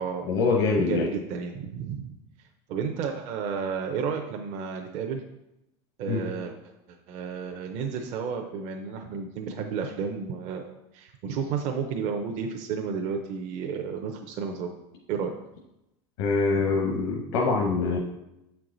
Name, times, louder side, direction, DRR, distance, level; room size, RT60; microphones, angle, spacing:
voice 1, 0.3-1.1 6.1-6.2 16.2-18.0, left 4 dB, 85° left, 1 dB, 1.0 m, -24 dB
voice 2, 0.8-2.1 2.7-5.2 6.0-6.5 7.1-14.7 15.1-15.3 16.6-16.7, right 6 dB, 50° right, 2 dB, 0.7 m, -32 dB
7.7 x 4.6 x 3.9 m, 0.90 s
supercardioid pair, 140°, 15 cm